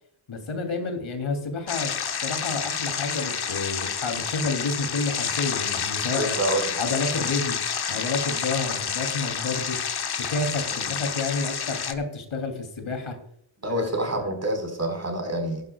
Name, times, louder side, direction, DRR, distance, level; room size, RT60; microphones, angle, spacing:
voice 1, 0.3-6.4 6.8-7.6 7.9-9.8 10.2-13.2 13.7-13.9, left 3 dB, 75° left, 5 dB, 3.0 m, -30 dB
sound 1, 1.7-11.9, left 7 dB, 50° left, 1.0 m, -29 dB
voice 2, 6.2-6.7 13.6-15.6, right 1 dB, 35° right, 3 dB, 4.4 m, -27 dB
16.0 x 11.5 x 2.3 m, 0.69 s
wide cardioid pair, 100°, 48 cm